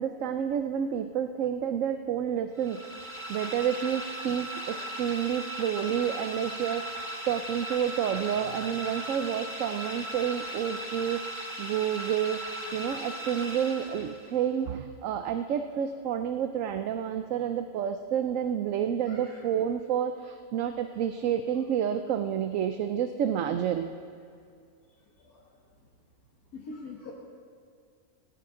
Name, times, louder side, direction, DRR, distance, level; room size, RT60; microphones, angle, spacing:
voice 1, 0.0-11.3 11.6-12.4 12.7-23.9, right 9 dB, 70° right, 8 dB, 1.0 m, -29 dB
sound 1, 2.6-14.4, right 1 dB, 20° right, 1.3 m, -38 dB
voice 2, 19.0-19.4 25.2-25.4 26.5-27.1, left 3 dB, 90° left, -3 dB, 1.9 m, -43 dB
19.0 x 17.0 x 3.8 m, 2.2 s
omnidirectional pair, 1.5 m